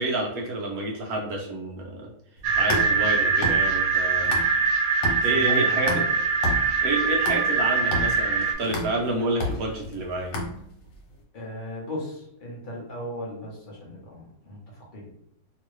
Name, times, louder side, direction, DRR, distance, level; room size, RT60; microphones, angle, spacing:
voice 1, 0.0-2.1 2.6-4.3 5.0-6.0 6.8-10.3, right 2 dB, 60° right, 0 dB, 1.0 m, -29 dB
sound 1, 2.4-4.7 5.0-11.0, left 1 dB, 80° left, 1.6 m, -32 dB
sound 2, 2.4-8.5, right 5 dB, 75° right, 1.3 m, -23 dB
voice 2, 5.3-6.0 11.3-14.6 14.9-15.1, equal, 40° left, -3 dB, 0.8 m, -36 dB
3.0 x 2.9 x 3.1 m, 0.74 s
omnidirectional pair, 2.0 m